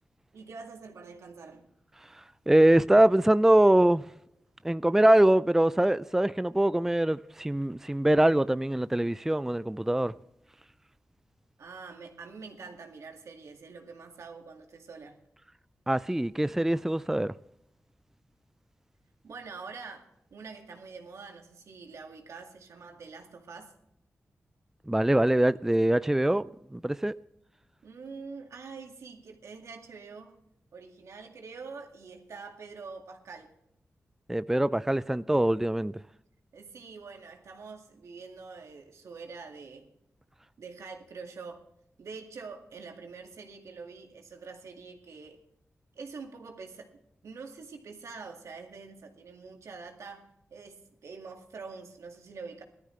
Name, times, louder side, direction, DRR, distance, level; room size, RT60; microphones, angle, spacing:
voice 1, 0.3-1.7 11.6-15.2 19.2-23.7 27.8-30.4 30.7-33.5 36.5-39.9 40.6-41.6 42.0-45.4 46.0-46.9 47.2-50.2 50.5-52.6, right 4 dB, 85° right, 2.1 m, -45 dB
voice 2, 2.5-4.0 4.6-10.1 15.9-17.3 24.9-27.1 34.3-36.0, right 1 dB, 10° right, 0.4 m, -23 dB
18.0 x 13.0 x 3.3 m
cardioid pair, 65°, 5 cm